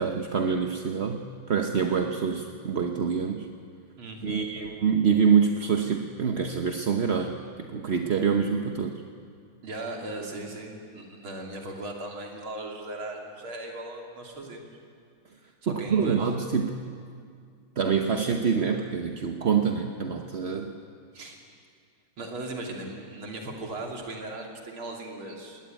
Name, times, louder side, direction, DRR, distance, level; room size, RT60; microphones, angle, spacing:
voice 1, 0.0-3.5 4.2-7.4 7.7-9.0 15.7-16.8 17.8-20.7, right 6 dB, 45° right, 4 dB, 0.9 m, -26 dB
voice 2, 4.0-4.4 9.6-14.6 15.6-16.3 21.1-21.4 22.2-25.6, right 2 dB, 80° right, 1 dB, 3.8 m, -37 dB
20.5 x 19.0 x 9.1 m, 2.2 s
omnidirectional pair, 2.3 m